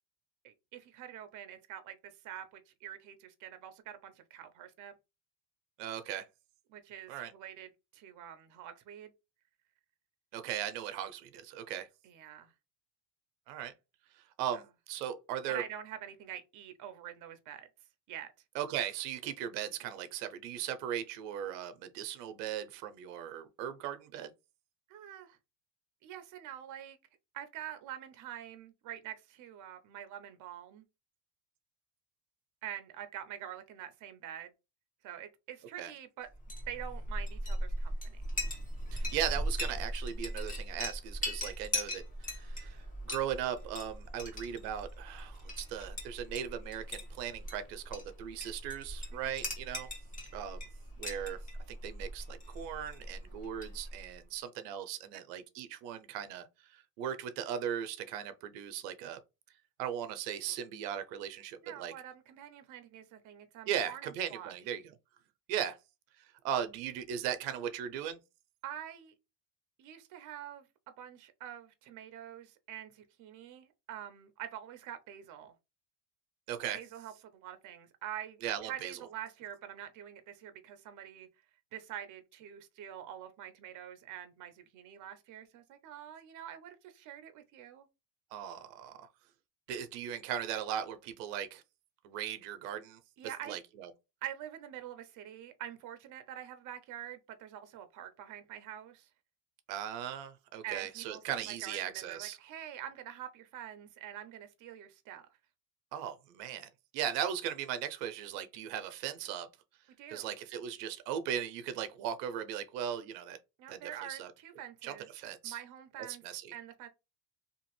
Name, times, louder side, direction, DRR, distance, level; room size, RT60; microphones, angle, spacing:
voice 1, 0.4-4.9 6.7-9.1 12.0-12.5 15.5-17.7 18.1-18.3 24.9-25.4 26.0-27.0 27.3-30.8 32.6-34.5 35.0-36.3 36.7-38.2 49.1-49.3 61.6-64.5 68.6-69.1 69.8-70.7 71.0-75.5 76.7-81.3 81.7-87.9 93.2-93.6 94.2-99.1 100.6-105.2 110.0-110.3 113.6-115.1 115.4-116.2 116.5-116.9, right 11 dB, 40° right, 0.7 m, -46 dB
voice 2, 5.8-6.3 7.1-7.3 10.3-11.9 13.5-13.7 14.1-15.6 18.5-24.3 35.8-35.9 38.9-49.9 50.3-50.7 51.0-51.4 51.7-59.2 59.8-61.9 63.7-64.9 65.5-65.8 66.2-68.2 76.5-76.8 78.4-79.0 88.3-89.1 89.7-91.6 92.0-93.0 93.5-93.9 99.7-102.4 105.9-109.5 110.1-113.4 113.7-114.3 114.8-115.6 116.2-116.5, right 9 dB, 85° right, 0.7 m, -38 dB
Chink clink, 36.3-54.1, equal, 15° left, 1.2 m, -39 dB
2.8 x 2.5 x 3.0 m
supercardioid pair, 120°, 47 cm